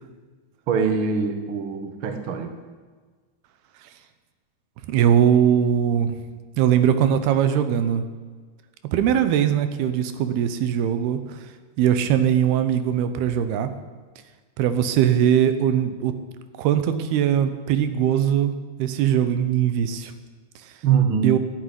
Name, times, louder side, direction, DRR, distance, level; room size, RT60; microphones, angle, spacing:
voice 1, 0.7-2.5 20.8-21.3, right 6 dB, 60° right, 6 dB, 1.4 m, -23 dB
voice 2, 4.9-6.2 6.6-8.0 8.8-11.2 11.8-13.7 14.6-16.1 16.6-18.5 18.8-20.1 21.2-21.4, right 9 dB, 85° right, 10 dB, 3.0 m, -20 dB
11.5 x 9.8 x 10.0 m, 1.4 s
omnidirectional pair, 4.4 m